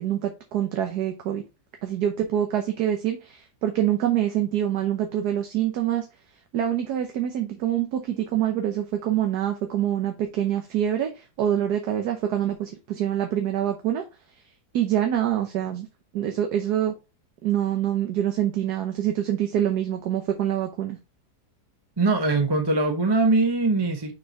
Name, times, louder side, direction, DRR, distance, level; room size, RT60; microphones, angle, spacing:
voice 1, 0.0-1.4 1.8-6.1 6.5-14.0 14.7-15.9 16.1-16.9 17.4-21.0, right 11 dB, 75° right, 1.4 m, -25 dB
voice 2, 22.0-24.1, right 3 dB, 25° right, 0.6 m, -22 dB
6.1 x 4.5 x 4.2 m
omnidirectional pair, 1.8 m